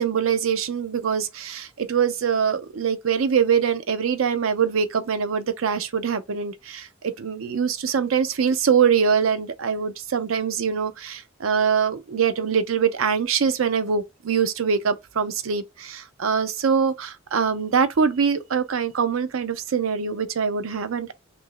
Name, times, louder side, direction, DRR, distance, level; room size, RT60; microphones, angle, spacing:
voice 1, 0.0-21.1, right 6 dB, 75° right, 0.5 m, -23 dB
2.8 x 2.6 x 3.7 m
head